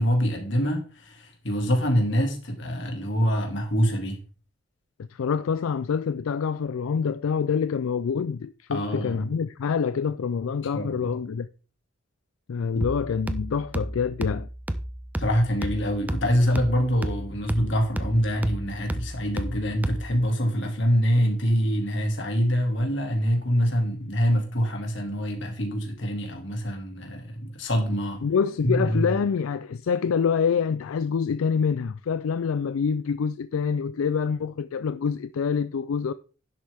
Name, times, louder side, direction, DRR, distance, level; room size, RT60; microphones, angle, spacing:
voice 1, 0.0-4.2 8.7-9.3 10.7-11.2 12.7-12.8 15.2-28.2 28.6-29.2, equal, 60° left, 2.3 m, -25 dB
voice 2, 5.1-11.5 12.5-14.5 28.2-36.1, left 6 dB, 90° left, 0.4 m, -26 dB
sound 1, 12.8-20.3, right 1 dB, 10° right, 0.5 m, -32 dB
11.0 x 7.4 x 3.5 m
head